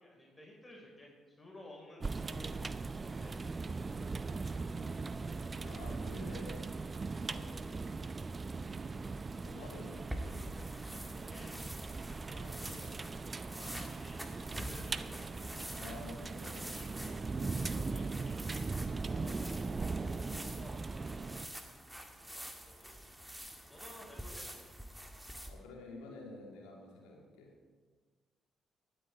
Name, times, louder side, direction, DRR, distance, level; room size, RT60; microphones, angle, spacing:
voice 1, 0.0-2.5 3.0-3.4 7.3-7.8 11.1-12.1 13.6-14.2 14.5-15.9 16.6-17.4 17.7-21.2 22.2-23.2 23.7-24.5, left 1 dB, 20° left, -2 dB, 4.6 m, -56 dB
sound 1, 2.0-21.5, right 4 dB, 30° right, 0.6 m, -39 dB
voice 2, 5.6-6.7 7.2-7.7 9.4-10.1 12.2-13.1 15.7-17.6 19.2-19.4 20.5-20.6 25.5-27.5, left 3 dB, 70° left, -1 dB, 2.6 m, -51 dB
sound 2, 10.0-25.5, equal, 5° right, 1.8 m, -47 dB
19.0 x 8.3 x 4.5 m, 1.5 s
figure-of-eight pair, 45°, 0 cm